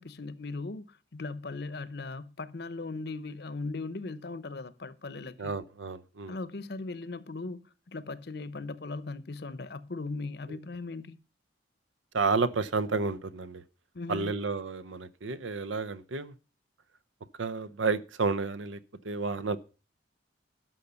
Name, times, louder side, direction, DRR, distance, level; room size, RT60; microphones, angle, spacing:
voice 1, 0.0-5.5 6.3-11.2 13.9-14.3, left 3 dB, 55° left, 0.7 m, -38 dB
voice 2, 5.4-6.4 10.5-10.6 12.1-13.6 14.1-16.3 17.4-18.8 19.0-19.6, right 4 dB, 80° right, 0.7 m, -31 dB
12.0 x 5.7 x 6.8 m
head